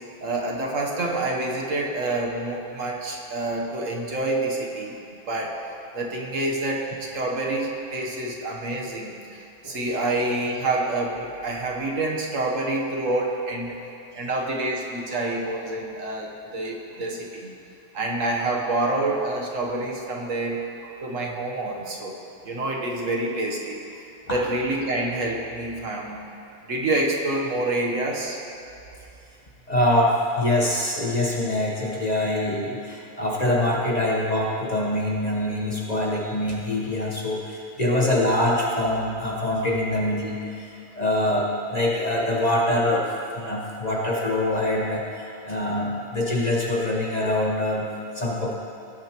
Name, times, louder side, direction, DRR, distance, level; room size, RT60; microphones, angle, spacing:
voice 1, 0.2-5.0 5.3-9.2 9.6-13.7 14.1-17.5 17.9-20.6 21.0-22.1 22.4-23.8 24.3-26.3 26.7-28.4, right 2 dB, 60° right, -1 dB, 1.4 m, -27 dB
voice 2, 29.7-43.1 43.4-48.5, left 1 dB, 30° left, -4 dB, 1.0 m, -24 dB
17.5 x 8.9 x 3.0 m, 2.6 s
omnidirectional pair, 1.6 m